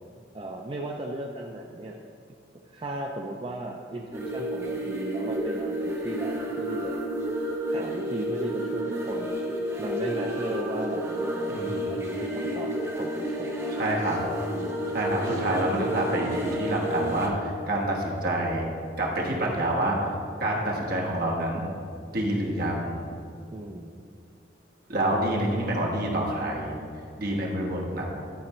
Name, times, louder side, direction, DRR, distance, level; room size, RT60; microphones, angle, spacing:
voice 1, 0.3-2.0 2.7-6.9 7.7-9.4 9.8-12.7 13.0-13.8 14.5-15.0 15.3-15.6 23.5-23.9 25.0-25.1 26.8-26.9, right 1 dB, 30° right, 0 dB, 0.4 m, -36 dB
sound 1, 4.1-17.3, equal, 15° right, 0.8 m, -31 dB
voice 2, 13.7-14.2 14.9-18.7 19.0-20.0 20.4-21.7 22.1-23.0 24.9-26.7 27.2-28.0, right 1 dB, 55° right, -2 dB, 1.4 m, -27 dB
11.0 x 4.3 x 4.3 m, 2.4 s
head